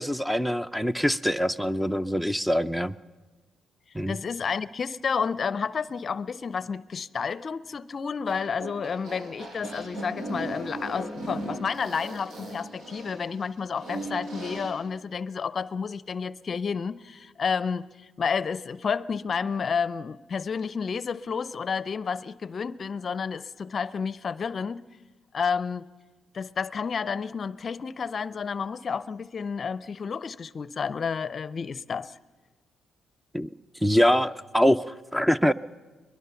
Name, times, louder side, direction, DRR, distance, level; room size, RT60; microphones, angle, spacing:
voice 1, 0.0-3.0 3.9-4.2 33.3-33.5 33.8-35.5, equal, 5° right, 14 dB, 0.6 m, -24 dB
voice 2, 4.1-17.9 18.2-24.8 25.3-25.9 26.3-32.1, left 6 dB, 45° left, 18 dB, 0.6 m, -30 dB
sound 1, 8.2-14.7, right 1 dB, 70° right, 7.3 m, -37 dB
22.0 x 21.0 x 7.0 m, 1.3 s
cardioid pair, 75°, 0 cm